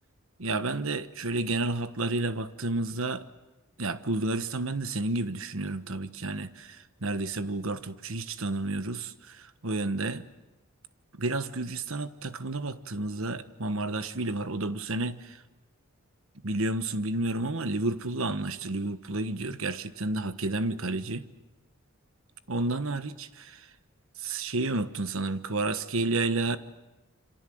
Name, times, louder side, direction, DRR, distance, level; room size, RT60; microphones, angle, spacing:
voice 1, 0.4-3.2 3.8-10.2 11.1-15.4 16.4-21.3 22.5-23.7 24.2-26.6, right 2 dB, 65° right, 12 dB, 1.3 m, -31 dB
27.0 x 26.0 x 7.8 m, 1.1 s
head